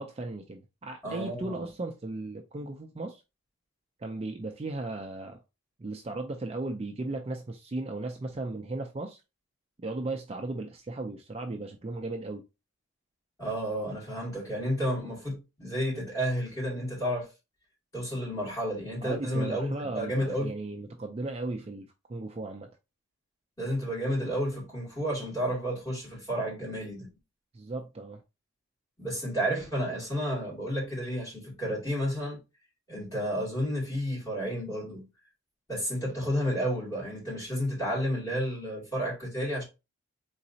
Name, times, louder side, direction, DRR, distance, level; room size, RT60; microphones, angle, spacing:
voice 1, 0.0-3.2 4.0-5.4 5.8-9.2 9.8-12.4 19.0-22.7 27.5-28.2, right 2 dB, 25° right, 0.4 m, -36 dB
voice 2, 1.0-1.7 13.4-17.3 17.9-20.5 23.6-27.1 29.0-32.4 32.9-35.1 35.7-39.6, equal, 15° left, 2.3 m, -31 dB
4.0 x 3.9 x 2.7 m
head